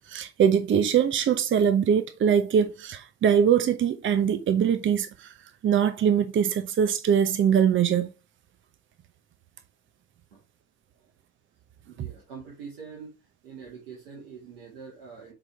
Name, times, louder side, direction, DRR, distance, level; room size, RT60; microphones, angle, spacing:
voice 1, 0.1-5.3 5.6-8.1, right 8 dB, 40° right, 0.8 m, -22 dB
voice 2, 11.8-13.1 13.4-15.3, right 6 dB, 80° right, 2.1 m, -44 dB
7.9 x 4.0 x 3.4 m
hypercardioid pair, 60°, 30 cm